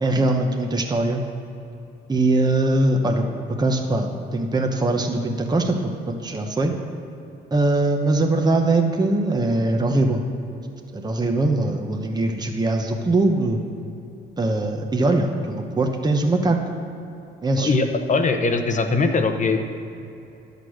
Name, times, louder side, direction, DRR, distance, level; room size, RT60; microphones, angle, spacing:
voice 1, 0.0-1.2 2.1-3.3 3.6-6.7 7.5-10.2 10.9-13.6 14.4-16.6 17.4-17.7, right 2 dB, 20° right, 3 dB, 1.0 m, -21 dB
voice 2, 17.6-19.7, left 3 dB, 40° left, 6 dB, 1.0 m, -21 dB
11.0 x 6.8 x 6.2 m, 2.8 s
cardioid pair, 90°, 20 cm